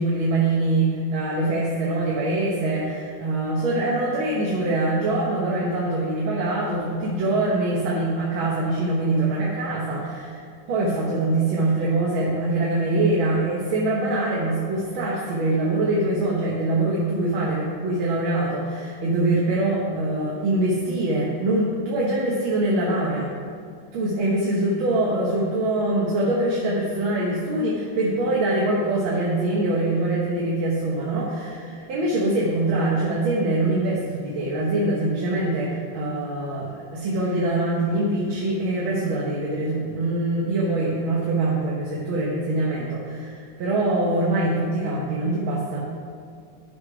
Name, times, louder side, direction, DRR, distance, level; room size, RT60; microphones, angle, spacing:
voice 1, 0.0-10.4 10.7-23.3 23.9-45.8, right 2 dB, 75° right, -5 dB, 1.9 m, -24 dB
11.0 x 4.9 x 4.8 m, 2.3 s
omnidirectional pair, 2.2 m